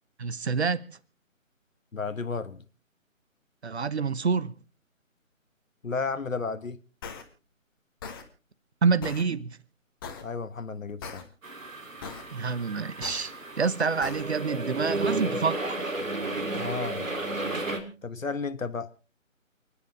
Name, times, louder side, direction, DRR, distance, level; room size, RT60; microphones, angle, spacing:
voice 1, 0.2-1.0 3.6-4.5 8.8-9.6 12.3-15.8, right 5 dB, 50° right, 1.1 m, -27 dB
voice 2, 1.9-2.6 5.8-6.8 10.2-11.2 16.6-17.0 18.0-18.9, left 4 dB, 70° left, 1.2 m, -33 dB
sound 1, 7.0-7.2 8.0-8.2 9.0-9.2 10.0-10.2 11.0-11.2 12.0-12.2 13.0-13.2 14.0-14.2, left 5 dB, 15° left, 1.4 m, -39 dB
sound 2, 11.4-17.8, right 2 dB, 70° right, 3.5 m, -33 dB
30.0 x 10.0 x 3.5 m
figure-of-eight pair, 155°, 41 cm